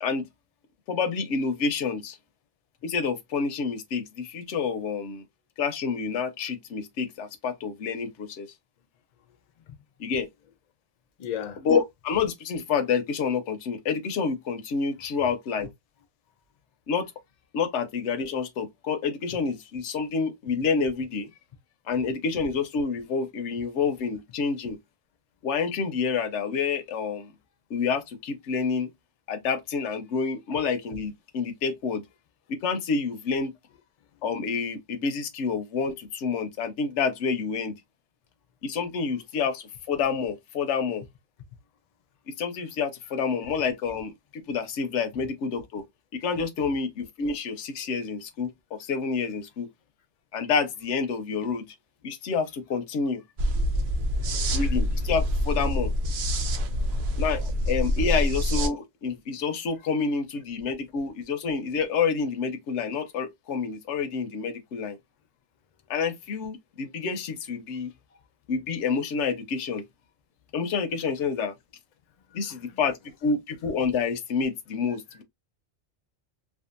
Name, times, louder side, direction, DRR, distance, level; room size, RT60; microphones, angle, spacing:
voice 1, 0.9-2.2 2.8-5.2 5.6-8.5 10.0-10.3 11.6-15.7 16.9-17.1 17.5-21.3 21.9-24.8 25.4-27.3 27.7-28.9 29.3-32.0 32.5-33.5 34.2-37.7 38.6-41.0 42.4-45.8 46.1-49.7 50.3-51.7 52.0-53.2 54.5-55.9 57.2-65.0 65.9-67.9 68.5-69.8 70.5-71.5 72.3-75.2, left 5 dB, 80° left, 0.9 m, -28 dB
voice 2, 11.2-11.6 15.2-15.7 19.3-19.4 54.2-54.8 56.9-57.0 72.3-72.8, left 9 dB, 50° left, 0.5 m, -39 dB
sound 1, 53.4-58.7, equal, 60° right, 0.6 m, -26 dB
2.6 x 2.4 x 2.4 m
omnidirectional pair, 1.2 m